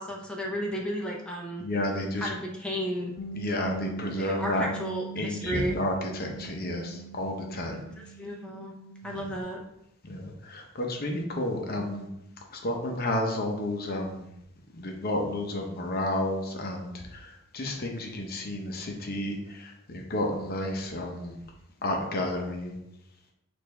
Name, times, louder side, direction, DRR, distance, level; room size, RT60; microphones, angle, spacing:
voice 1, 0.0-1.6 2.2-3.1 4.2-5.8 8.2-8.7 9.0-9.6, equal, 5° left, -2 dB, 0.6 m, -33 dB
voice 2, 1.6-2.3 3.3-4.6 5.2-7.8 9.1-9.3 10.0-12.1 12.5-14.2 14.7-21.4 21.8-22.8, left 1 dB, 45° left, 2 dB, 0.7 m, -31 dB
Bass guitar, 3.2-9.4, right 7 dB, 85° left, 0.4 m, -42 dB
6.4 x 2.6 x 3.2 m, 0.82 s
head